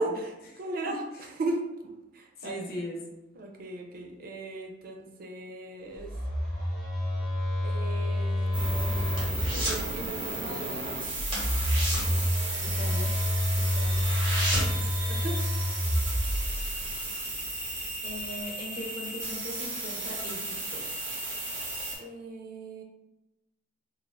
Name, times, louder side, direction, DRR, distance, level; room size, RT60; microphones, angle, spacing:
voice 1, 0.0-1.0 1.4-2.8 3.3-6.1 7.6-11.0 13.6-14.0 14.6-15.6 22.0-22.8, right 2 dB, 50° right, 2 dB, 0.4 m, -37 dB
voice 2, 0.8-1.3 2.4-3.0 12.6-13.1 18.0-20.8, left 1 dB, 55° left, -1 dB, 0.6 m, -39 dB
Telephone, 6.0-10.0 11.1-16.9, left 1 dB, 5° left, 0.6 m, -29 dB
sound 1, 8.3-9.9 10.2-10.5 10.7-10.9 11.2-13.1 13.5-13.6 13.8-14.9 15.3-15.4, equal, 30° right, 1.0 m, -33 dB
sound 2, 8.5-22.0, right 2 dB, 85° right, 1.3 m, -34 dB
3.2 x 2.3 x 2.2 m, 0.98 s
head